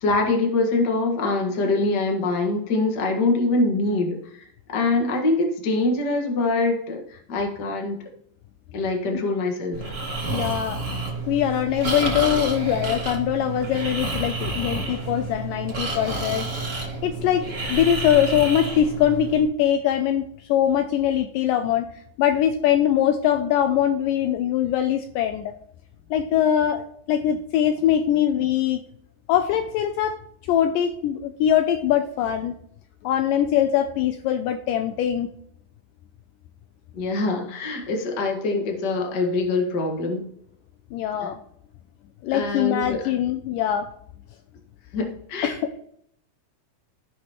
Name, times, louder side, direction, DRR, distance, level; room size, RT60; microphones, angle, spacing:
voice 1, 0.0-8.0 8.7-9.8 36.9-40.2 42.3-43.0 44.9-45.5, left 2 dB, 40° left, 1 dB, 1.5 m, -24 dB
Breathing, 9.7-19.4, right 3 dB, 40° right, 0.8 m, -30 dB
voice 2, 10.3-10.8 11.3-16.5 17.0-21.9 22.2-25.5 26.1-28.8 29.3-30.2 30.5-32.6 33.0-35.3 40.9-41.4 42.2-43.9 45.4-45.8, left 10 dB, 80° left, 8 dB, 2.0 m, -22 dB
16.0 x 5.8 x 3.0 m, 0.68 s
omnidirectional pair, 4.2 m